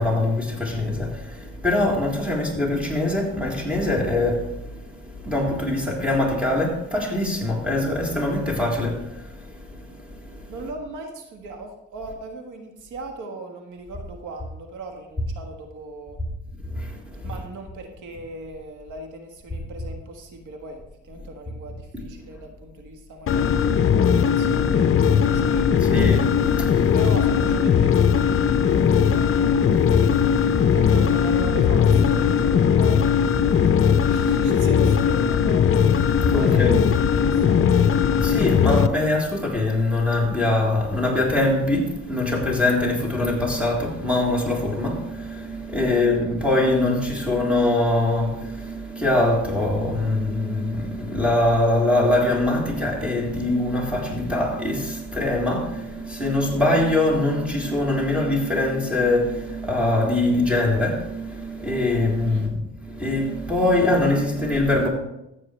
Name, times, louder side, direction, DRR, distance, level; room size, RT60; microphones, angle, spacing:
voice 1, 0.0-10.5 16.6-17.3 22.3-22.4 25.8-26.9 29.7-30.7 36.1-36.8 38.2-64.9, left 2 dB, 5° right, 3.6 m, -23 dB
voice 2, 10.5-16.2 17.2-26.0 26.9-29.3 30.7-35.9 36.3-36.9 37.2-38.0 45.8-45.9 62.2-62.5, right 2 dB, 80° right, 1.6 m, -38 dB
sound 1, 23.3-38.9, left 7 dB, 45° left, 0.6 m, -19 dB
14.5 x 8.5 x 3.3 m
cardioid pair, 90°, 30 cm